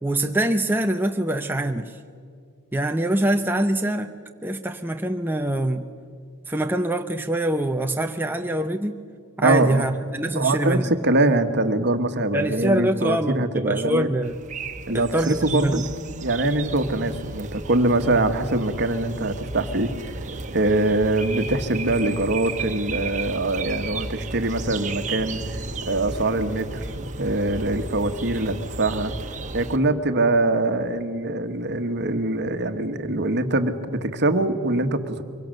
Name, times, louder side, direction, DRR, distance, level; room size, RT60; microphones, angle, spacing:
voice 1, 0.0-2.0 2.7-4.1 4.4-5.9 6.5-9.0 9.4-10.9 12.3-14.4 14.9-15.9, right 1 dB, 10° right, 4 dB, 0.7 m, -24 dB
voice 2, 9.4-9.9 10.3-14.1 14.9-15.8 16.2-20.1 20.5-29.1 29.5-35.2, right 2 dB, 50° right, 8 dB, 1.4 m, -23 dB
sound 1, 14.2-29.8, right 3 dB, 35° right, 1.2 m, -34 dB
24.5 x 23.0 x 6.6 m, 2.1 s
head